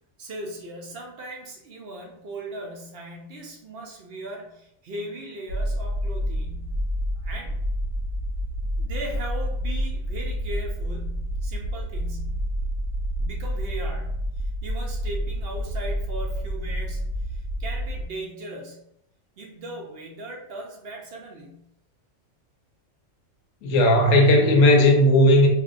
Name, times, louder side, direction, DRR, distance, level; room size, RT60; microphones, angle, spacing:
voice 1, 0.2-6.8 7.2-7.6 8.8-12.5 13.2-18.8 19.4-21.7, right 1 dB, 60° right, 0 dB, 0.7 m, -38 dB
sound 1, 5.5-18.1, equal, 90° right, 1.3 m, -29 dB
voice 2, 23.6-25.5, left 1 dB, 75° left, 2 dB, 1.0 m, -16 dB
2.9 x 2.6 x 2.5 m, 0.78 s
omnidirectional pair, 1.4 m